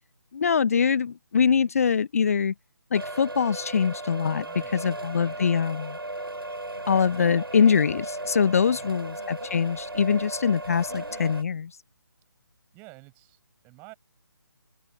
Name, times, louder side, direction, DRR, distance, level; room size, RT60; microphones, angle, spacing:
voice 1, 0.3-2.5 2.9-4.4 4.7-6.0 6.9-11.7, left 6 dB, 40° left, 0.6 m, -23 dB
sound 1, 2.9-11.4, right 2 dB, 75° right, 7.3 m, -36 dB
voice 2, 4.3-5.6 8.6-9.0 12.7-13.9, right 29 dB, 15° right, 5.1 m, -51 dB
sound 2, 4.4-11.4, left 2 dB, 75° left, 6.4 m, -51 dB
open air
figure-of-eight pair, 145°, 13 cm